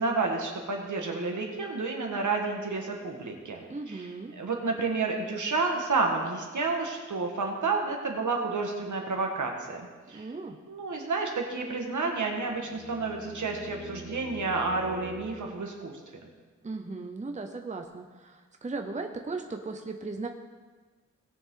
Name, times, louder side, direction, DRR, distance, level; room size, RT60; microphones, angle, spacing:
voice 1, 0.0-4.1 4.4-10.3 10.7-16.2, right 3 dB, 75° right, 1 dB, 1.7 m, -30 dB
voice 2, 3.7-4.3 10.1-10.6 16.6-20.3, right 3 dB, 25° right, 4 dB, 0.7 m, -37 dB
sound 1, 11.9-15.9, right 1 dB, 80° left, 2.9 m, -46 dB
18.0 x 6.8 x 3.9 m, 1.4 s
wide cardioid pair, 125°, 30 cm